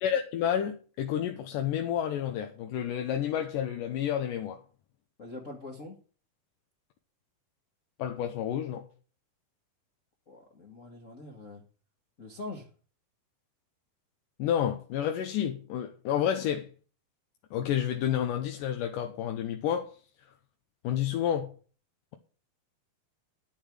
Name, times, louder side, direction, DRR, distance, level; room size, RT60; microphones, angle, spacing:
voice 1, 0.0-4.6 8.0-8.8 14.4-16.7 17.5-19.9 20.8-21.5, left 9 dB, 75° left, 2.2 m, -30 dB
voice 2, 5.2-6.0 10.3-11.6 12.2-12.7, left 2 dB, 50° left, 0.9 m, -43 dB
10.0 x 8.3 x 4.9 m
omnidirectional pair, 4.2 m